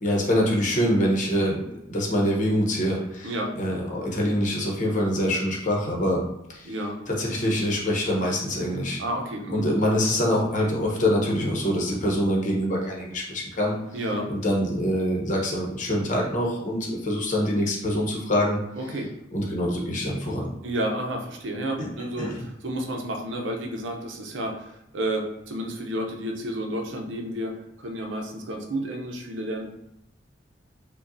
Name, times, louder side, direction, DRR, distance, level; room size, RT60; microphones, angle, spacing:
voice 1, 0.0-1.6 1.9-6.2 6.5-6.7 7.1-9.0 9.5-13.7 14.3-18.6 19.3-20.5 21.8-21.9 22.2-22.4, equal, 45° left, -2 dB, 0.9 m, -25 dB
voice 2, 3.2-3.5 6.6-7.0 9.0-9.6 13.9-14.3 18.8-19.1 20.6-27.6 27.8-29.6, right 1 dB, 85° right, 2 dB, 0.6 m, -31 dB
5.1 x 2.3 x 2.6 m, 0.82 s
head